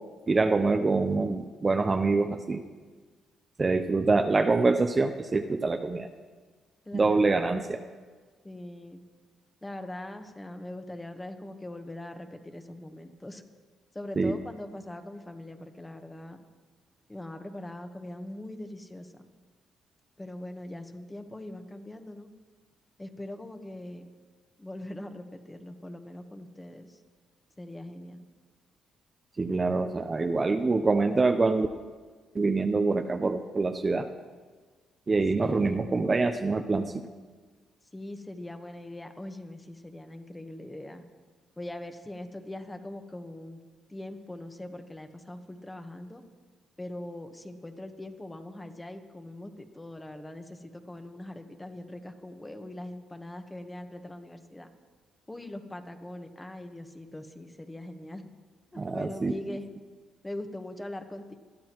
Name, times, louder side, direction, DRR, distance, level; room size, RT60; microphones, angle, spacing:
voice 1, 0.3-2.6 3.6-6.1 6.9-7.8 14.2-14.3 29.4-31.7 32.3-34.1 35.1-37.0 58.8-59.3, right 3 dB, 30° right, 7 dB, 0.6 m, -25 dB
voice 2, 6.8-7.4 8.4-9.0 9.6-13.4 13.9-16.4 17.1-19.3 20.2-22.3 23.0-24.1 24.6-27.0 27.6-28.2 35.4-35.9 37.9-41.0 41.6-43.6 43.9-46.2 46.8-54.7 55.3-58.2 58.7-59.6 60.2-61.3, left 1 dB, 15° left, 6 dB, 1.1 m, -41 dB
21.0 x 12.5 x 3.0 m, 1.4 s
cardioid pair, 90°, 0 cm